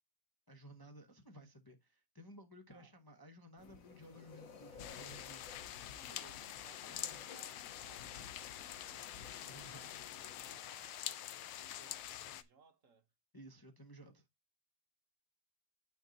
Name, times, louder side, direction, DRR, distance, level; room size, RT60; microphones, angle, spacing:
voice 1, 0.5-5.5 6.8-7.4 9.4-10.0 13.3-14.2, equal, 30° left, 0.4 m, -56 dB
sound 1, 3.6-10.6, left 5 dB, 55° left, 1.2 m, -56 dB
sound 2, 4.8-12.4, left 12 dB, 80° left, 1.4 m, -46 dB
voice 2, 5.8-9.1 9.5-13.1, right 6 dB, 50° right, 1.2 m, -64 dB
9.3 x 4.5 x 3.9 m
omnidirectional pair, 2.0 m